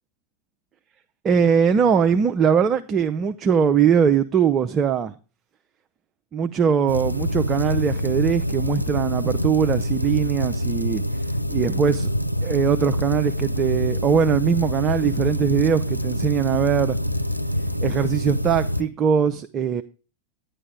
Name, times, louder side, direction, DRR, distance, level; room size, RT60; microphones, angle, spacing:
voice 1, 1.2-5.1 6.3-11.0 11.5-12.1 12.4-17.0 17.8-19.8, right 7 dB, 25° right, 0.5 m, -21 dB
sound 1, 6.9-18.8, equal, 90° right, 0.5 m, -25 dB
11.0 x 9.6 x 3.4 m
figure-of-eight pair, 90°, 0 cm